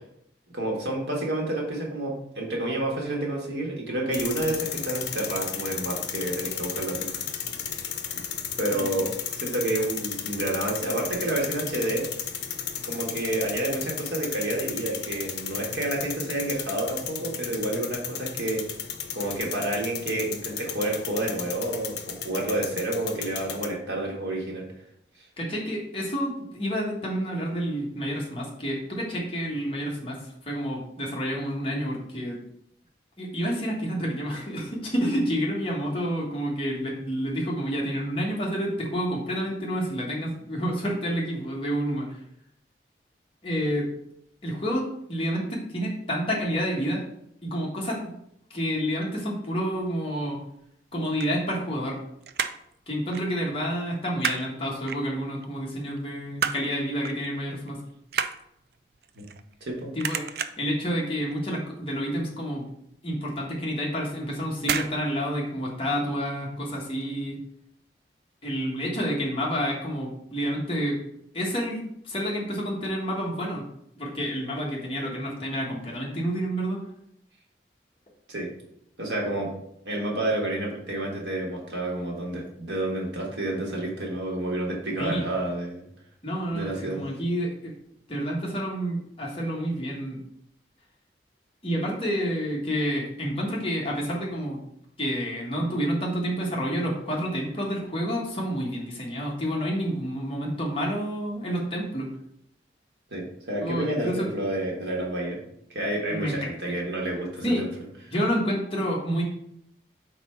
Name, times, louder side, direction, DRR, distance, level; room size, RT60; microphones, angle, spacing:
voice 1, 0.5-7.3 8.6-12.1 12.8-18.6 19.1-24.7 59.2-59.3 59.6-59.9 78.3-78.5 79.0-79.5 79.9-85.8 86.5-87.0 103.1-105.4 105.7-107.7, right 1 dB, 80° right, -1 dB, 1.6 m, -29 dB
sound 1, 4.1-23.7, left 8 dB, 80° left, 0.7 m, -34 dB
voice 2, 8.7-9.0 25.4-32.4 33.2-42.2 43.4-43.9 44.4-44.8 45.1-47.0 47.4-48.0 48.5-50.4 50.9-52.0 52.9-57.8 59.9-60.2 60.6-62.6 63.0-67.4 68.4-71.0 71.3-73.6 74.0-76.8 85.0-85.3 86.2-87.7 88.1-90.2 91.6-94.6 95.0-102.1 103.6-104.3 106.1-106.3 107.4-107.6 108.1-109.2, equal, 30° left, -3 dB, 1.3 m, -29 dB
sound 2, 51.0-52.0 52.2-52.7 53.1-53.3 53.6-54.5 54.9-55.5 55.9-56.7 57.0-57.3 57.6-59.7 60.0-60.7 61.2-61.5 61.8-61.9 62.2-62.3 62.8-62.9 63.7-64.0 64.6-65.0 65.2-65.3, right 7 dB, 60° right, 0.4 m, -30 dB
4.3 x 4.2 x 5.6 m, 0.76 s
head